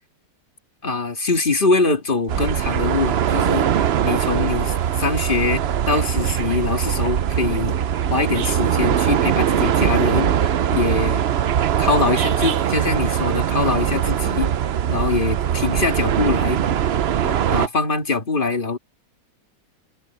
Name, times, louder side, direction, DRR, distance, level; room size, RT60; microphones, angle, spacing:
voice 1, 0.8-7.8 8.1-11.2 11.8-14.5 14.9-16.6 17.2-18.8, left 3 dB, 30° left, 2.2 m, -23 dB
sound 1, 2.3-17.7, right 9 dB, 70° right, 0.6 m, -21 dB
omnidirectional pair, 1.8 m